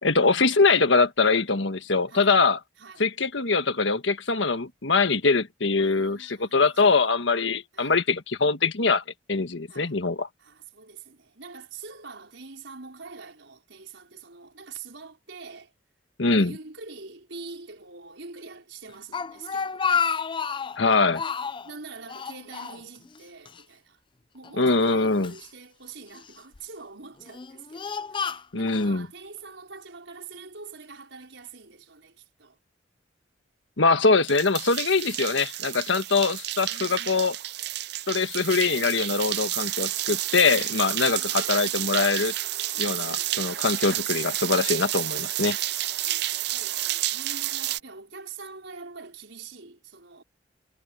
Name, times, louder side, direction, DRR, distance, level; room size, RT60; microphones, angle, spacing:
voice 1, 0.0-2.6 3.0-9.0 9.3-10.3 16.2-16.5 20.8-21.2 24.6-25.3 28.5-29.1 33.8-37.3 38.1-42.3 42.8-45.6, left 4 dB, 80° left, 1.5 m, -23 dB
voice 2, 2.1-2.4 2.8-3.1 5.8-7.1 7.7-8.0 9.7-10.0 10.4-15.7 16.3-20.1 21.6-24.0 24.3-32.6 36.6-37.4 40.5-41.8 42.7-43.5 45.1-45.6 46.0-50.2, right 4 dB, 80° right, 5.0 m, -45 dB
Speech, 18.9-20.8 21.1-21.7 22.1-23.2 23.5-23.6 24.4-25.4 26.1-26.6 27.2-28.9, left 6 dB, 25° left, 0.5 m, -30 dB
sound 1, 34.3-47.8, right 15 dB, 60° right, 0.5 m, -30 dB
head